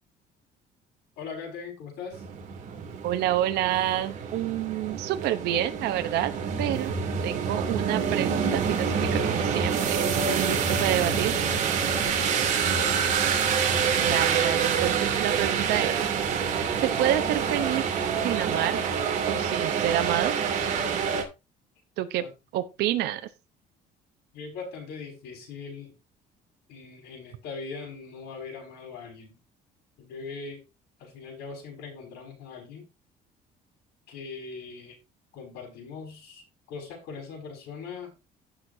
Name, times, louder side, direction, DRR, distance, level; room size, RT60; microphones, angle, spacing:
voice 1, 1.2-2.2 12.0-13.2 22.2-22.3 24.3-26.0 26.7-29.4 30.0-30.6 31.0-32.9 34.1-35.0 35.3-38.1, left 5 dB, 85° left, 5.8 m, -41 dB
sound 1, 2.1-21.2, right 6 dB, 45° right, 2.6 m, -27 dB
voice 2, 3.0-6.3 6.6-6.9 7.2-11.4 14.0-16.1 16.4-17.8 18.2-18.8 19.3-20.3 22.0-22.2 22.5-23.3, right 12 dB, 85° right, 0.9 m, -28 dB
16.0 x 6.5 x 2.8 m
cardioid pair, 170°, 17 cm